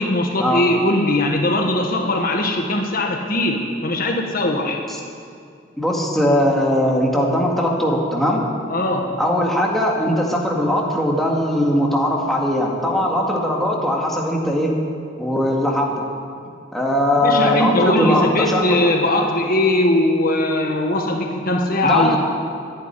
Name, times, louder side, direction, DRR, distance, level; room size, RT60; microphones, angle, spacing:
voice 1, 0.0-4.8 8.7-9.2 17.2-22.2, left 1 dB, 50° left, 2 dB, 1.4 m, -20 dB
voice 2, 5.8-8.4 9.2-14.8 15.2-16.1 16.7-18.9 21.8-22.2, left 1 dB, ahead, -3 dB, 2.1 m, -20 dB
12.5 x 10.5 x 9.8 m, 2.4 s
head